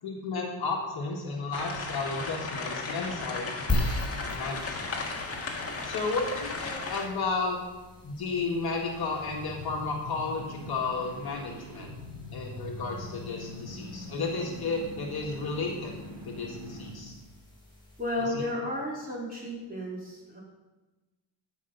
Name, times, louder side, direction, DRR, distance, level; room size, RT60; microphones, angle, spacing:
voice 1, 0.0-5.0 5.8-7.6 8.0-11.9 12.3-16.0 16.3-17.1 18.2-18.4, left 3 dB, 50° left, 0 dB, 1.9 m, -33 dB
sound 1, 1.5-7.1, left 3 dB, 30° left, 1.6 m, -35 dB
sound 2, 3.7-18.4, left 2 dB, 10° left, 3.7 m, -40 dB
sound 3, 8.5-17.2, left 1 dB, 45° right, 2.8 m, -43 dB
voice 2, 18.0-20.4, left 1 dB, 20° right, -4 dB, 3.9 m, -33 dB
12.5 x 5.5 x 5.6 m, 1.1 s
cardioid pair, 105°, 47 cm